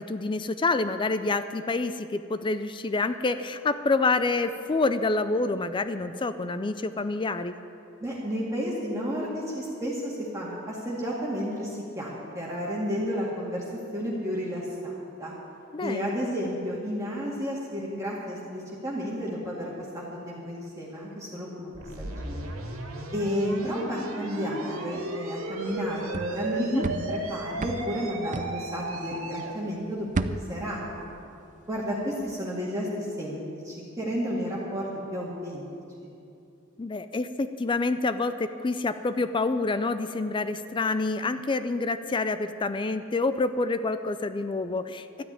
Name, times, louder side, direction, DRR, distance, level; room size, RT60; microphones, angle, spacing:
voice 1, 0.0-7.5 15.7-16.2 26.6-26.9 36.8-45.2, left 3 dB, 25° left, 11 dB, 0.4 m, -27 dB
voice 2, 8.0-13.6 13.9-15.3 15.8-22.6 23.1-31.0 31.7-35.7 36.0-36.1, equal, 15° right, -5 dB, 2.0 m, -32 dB
sound 1, 21.7-29.5, right 2 dB, 85° right, 2.1 m, -35 dB
sound 2, 25.7-29.4 29.8-31.8 32.0-32.3, right 3 dB, 40° right, 0.5 m, -35 dB
13.0 x 9.5 x 9.4 m, 2.7 s
head